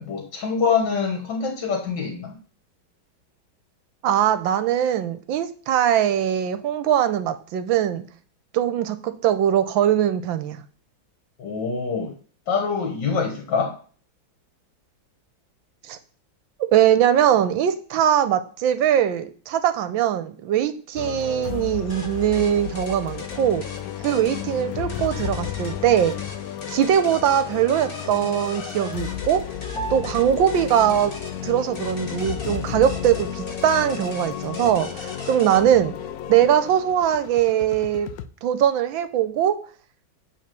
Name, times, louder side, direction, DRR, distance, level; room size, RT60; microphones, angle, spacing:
voice 1, 0.0-2.3 11.4-12.1 12.5-13.8, left 5 dB, 60° left, 2 dB, 1.9 m, -25 dB
voice 2, 4.0-8.0 8.5-10.6 15.9-16.0 16.6-23.6 24.0-26.1 26.7-29.4 29.9-31.1 31.4-35.9 36.3-38.1 38.4-39.6, right 10 dB, 75° right, 11 dB, 1.4 m, -21 dB
sound 1, 21.0-38.3, left 10 dB, 90° left, 0.8 m, -33 dB
sound 2, 21.9-35.6, left 3 dB, 30° left, 1.3 m, -40 dB
Piano, 29.7-39.4, right 4 dB, 30° right, 2.7 m, -44 dB
9.5 x 3.7 x 6.8 m, 0.43 s
omnidirectional pair, 2.2 m